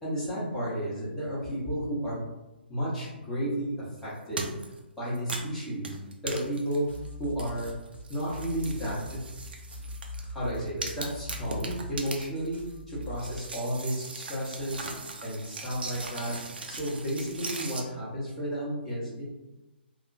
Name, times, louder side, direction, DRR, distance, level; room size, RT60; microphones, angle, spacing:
voice 1, 0.0-2.2 2.7-4.5 5.0-5.9 6.2-6.8 7.2-7.7 8.1-9.2 10.2-12.6 12.9-14.9 15.2-16.3 16.7-19.3, equal, 5° left, -11 dB, 1.1 m, -32 dB
sound 1, 4.4-4.8 5.1-7.1 7.4-10.2 10.5-12.7 13.0-17.8, right 3 dB, 60° right, 0.4 m, -39 dB
sound 2, 6.8-13.4, left 1 dB, 80° left, 0.5 m, -42 dB
2.7 x 2.3 x 2.6 m, 1.1 s
figure-of-eight pair, 135°, 6 cm